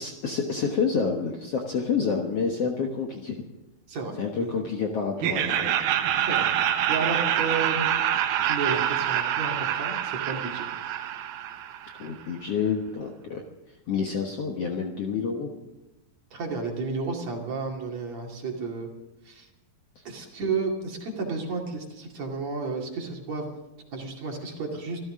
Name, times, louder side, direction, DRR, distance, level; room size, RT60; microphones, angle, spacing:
voice 1, 0.0-3.4 4.2-5.7 12.0-13.4 13.9-15.5, left 5 dB, 55° left, 1 dB, 1.8 m, -28 dB
voice 2, 3.9-4.5 6.2-6.6 6.9-7.9 8.5-10.7 16.3-18.9 19.2-19.5 20.0-23.5 23.9-25.0, right 4 dB, 50° right, 1 dB, 3.2 m, -32 dB
Laughter, 5.2-12.1, right 10 dB, 75° right, 2.7 m, -26 dB
25.5 x 14.0 x 3.8 m, 1.0 s
omnidirectional pair, 4.2 m